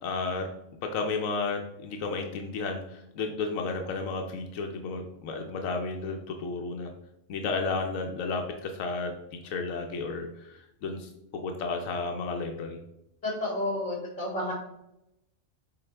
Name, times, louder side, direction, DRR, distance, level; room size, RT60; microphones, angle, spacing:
voice 1, 0.0-0.5 0.8-6.9 7.3-9.1 9.4-11.1 11.4-12.8, left 4 dB, 90° left, 3 dB, 1.1 m, -32 dB
voice 2, 13.2-14.5, left 1 dB, 35° left, -4 dB, 2.8 m, -31 dB
7.8 x 3.9 x 3.3 m, 0.84 s
omnidirectional pair, 1.4 m